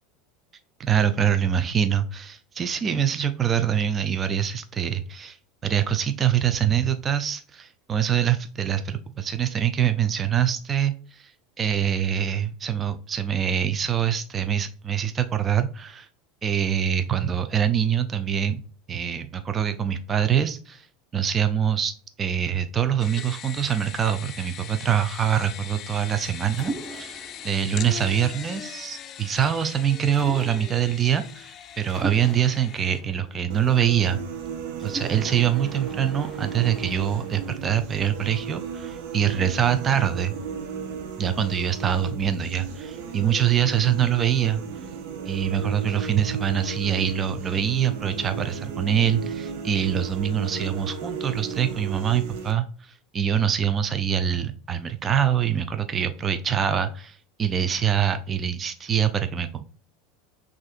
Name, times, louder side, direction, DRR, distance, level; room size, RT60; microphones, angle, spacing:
voice 1, 0.8-5.4 5.6-11.3 11.6-16.1 16.4-18.6 18.9-20.9 21.1-34.2 34.8-40.3 41.2-44.6 45.3-59.6, right 9 dB, 30° right, 9 dB, 0.4 m, -24 dB
sound 1, 23.0-33.0, left 9 dB, 40° left, 0.4 m, -40 dB
Mechanisms, 26.5-28.9 30.1-31.0 31.9-34.2 34.8-39.0, right 2 dB, ahead, 1.7 m, -41 dB
sound 2, 33.5-52.5, right 6 dB, 65° right, 0.7 m, -35 dB
6.0 x 2.5 x 2.4 m, 0.42 s
hypercardioid pair, 95°, 0 cm